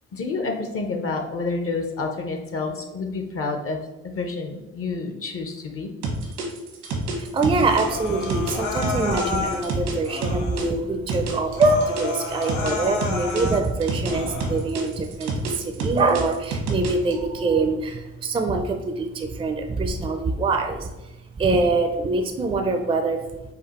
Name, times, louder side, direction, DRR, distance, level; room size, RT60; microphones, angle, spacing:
voice 1, 0.1-3.8 4.0-5.9, left 3 dB, 50° left, 5 dB, 0.6 m, -29 dB
sound 1, 6.0-10.7 11.1-14.1 14.4-17.1, right 4 dB, 85° right, 1.2 m, -28 dB
voice 2, 7.2-23.2, right 3 dB, 20° right, 5 dB, 0.4 m, -24 dB
Human voice, 7.6-9.7 10.0-10.7 11.1-11.2 11.5-13.6 14.0-14.6, left 4 dB, 85° left, 1.1 m, -31 dB
5.1 x 2.4 x 4.1 m, 1.0 s
cardioid pair, 105°, 29 cm